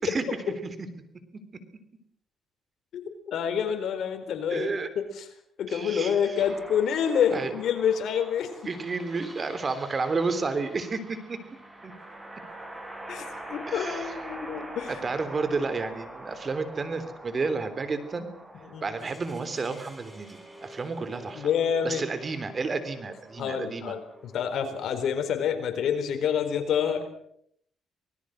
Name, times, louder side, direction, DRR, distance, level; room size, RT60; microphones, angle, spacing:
voice 1, 2.9-5.3 5.6-8.5 13.1-15.1 18.6-18.8 21.3-22.0 23.4-27.1, left 8 dB, 70° left, 7 dB, 4.3 m, -28 dB
voice 2, 4.5-4.9 5.7-6.3 7.3-7.5 8.7-11.4 11.8-11.9 13.7-14.1 14.9-18.3 18.8-21.5 21.8-24.0, right 4 dB, 35° right, 11 dB, 3.4 m, -31 dB
sound 1, 6.4-25.0, right 1 dB, 15° right, 7.0 m, -45 dB
25.5 x 19.5 x 6.5 m, 0.69 s
cardioid pair, 90°, 0 cm